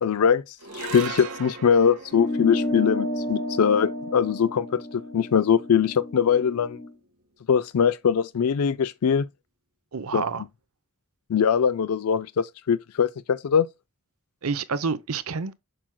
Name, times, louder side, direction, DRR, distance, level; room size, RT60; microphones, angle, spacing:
voice 1, 0.0-6.8 7.5-9.3 10.1-10.2 11.3-13.7, left 7 dB, 75° left, 0.4 m, -22 dB
sound 1, 0.6-7.1, right 4 dB, 85° right, 1.8 m, -41 dB
sound 2, 2.1-6.9, left 1 dB, 25° left, 0.8 m, -31 dB
voice 2, 9.9-10.4 14.4-15.5, right 5 dB, 70° right, 0.8 m, -28 dB
7.8 x 6.2 x 2.2 m
head